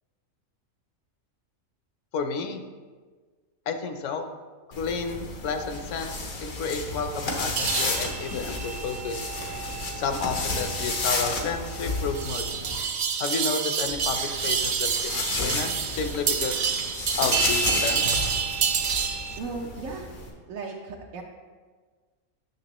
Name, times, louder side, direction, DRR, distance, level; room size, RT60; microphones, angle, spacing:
voice 1, 2.1-2.6 3.7-4.3 4.8-6.1 6.4-9.2 10.0-12.4 13.2-16.7 17.2-18.0, left 5 dB, 70° left, 7 dB, 1.0 m, -31 dB
sound 1, 4.7-12.8 13.8-20.3, left 3 dB, 90° left, 1.5 m, -32 dB
sound 2, 7.6-19.4, right 6 dB, 60° right, 0.8 m, -29 dB
voice 2, 19.4-20.1 20.4-21.2, right 4 dB, 85° right, -1 dB, 1.1 m, -36 dB
9.7 x 6.6 x 3.0 m, 1.5 s
omnidirectional pair, 1.4 m